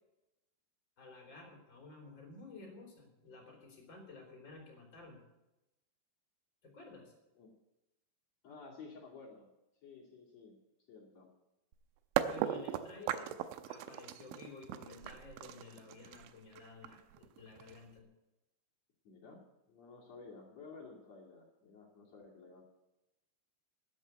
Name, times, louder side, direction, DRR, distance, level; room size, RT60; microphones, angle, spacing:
voice 1, 1.0-5.2 6.6-7.1 12.1-13.3 13.7-18.1, left 3 dB, 25° left, 1 dB, 3.4 m, -52 dB
voice 2, 8.4-9.5 9.8-10.6 10.9-11.3 19.0-19.4 19.7-22.6, left 4 dB, 40° left, -2 dB, 2.9 m, -53 dB
sound 1, 11.7-11.8 12.2-18.0, right 12 dB, 85° right, 3.1 m, -38 dB
12.5 x 10.5 x 8.1 m, 0.97 s
omnidirectional pair, 5.6 m